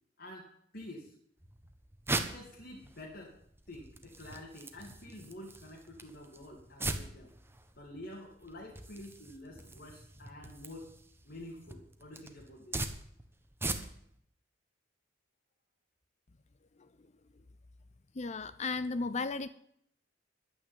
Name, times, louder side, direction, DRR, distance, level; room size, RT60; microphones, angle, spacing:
voice 1, 0.2-1.1 2.3-3.4 3.7-7.3 7.8-10.9 11.2-12.9, left 1 dB, 60° left, -2 dB, 2.5 m, -48 dB
sound 1, 1.4-14.2, right 2 dB, 15° right, 1.1 m, -41 dB
voice 2, 18.1-19.5, left 3 dB, 40° left, 13 dB, 0.6 m, -35 dB
11.0 x 9.4 x 8.9 m, 0.69 s
head